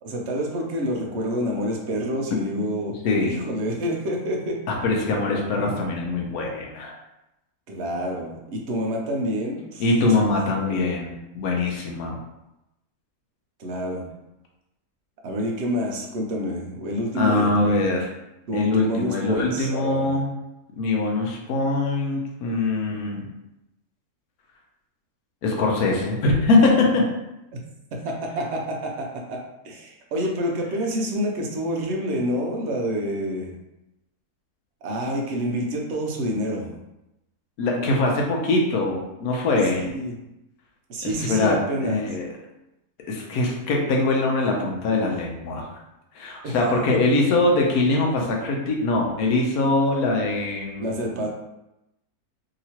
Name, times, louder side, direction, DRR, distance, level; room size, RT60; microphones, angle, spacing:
voice 1, 0.0-3.0 3.2-4.6 7.7-10.1 10.6-11.0 13.6-14.1 15.2-17.7 18.5-20.1 27.9-29.4 29.6-33.5 34.8-36.7 39.8-40.2 40.9-42.0 46.4-46.5 46.9-47.2 50.8-51.3, equal, 60° right, 0 dB, 0.8 m, -28 dB
voice 2, 3.0-3.4 4.7-6.9 9.8-12.2 17.1-18.1 18.5-20.3 20.8-23.3 25.4-27.0 37.6-39.9 41.0-42.3 43.1-45.7 46.1-50.9, left 2 dB, 75° left, 0 dB, 1.1 m, -22 dB
2.9 x 2.8 x 2.8 m, 0.92 s
omnidirectional pair, 1.6 m